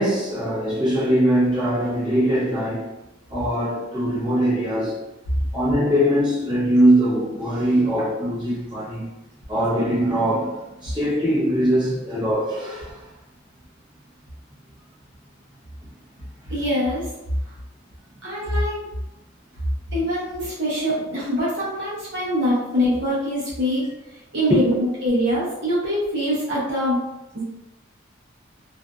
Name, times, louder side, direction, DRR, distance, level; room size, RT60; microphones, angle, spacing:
voice 1, 0.0-2.9 3.3-5.0 5.5-9.1 9.5-13.1 24.5-24.6, equal, 25° right, 0.9 m, -21 dB
voice 2, 16.5-17.1 18.2-18.8 19.9-23.8 24.3-27.0 27.3-27.4, equal, 55° right, 0.8 m, -23 dB
2.5 x 2.4 x 2.3 m
head